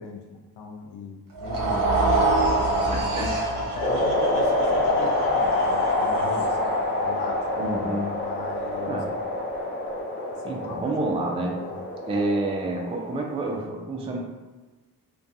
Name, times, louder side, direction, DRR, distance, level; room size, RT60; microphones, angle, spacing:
voice 1, 0.0-2.2 2.7-6.7 7.0-7.5 8.2-9.0 10.5-11.1 11.4-11.9, left 4 dB, 85° left, 2 dB, 0.5 m, -39 dB
sound 1, 1.3-7.6, right 2 dB, 60° right, 0.7 m, -26 dB
voice 2, 2.9-3.3 7.6-8.1 8.9-9.1 10.4-11.8 12.1-14.2, right 2 dB, 15° right, 0 dB, 0.3 m, -29 dB
sound 2, 3.8-13.7, left 2 dB, 30° left, 0.7 m, -27 dB
2.4 x 2.2 x 2.6 m, 1.2 s
cardioid pair, 75°, 39 cm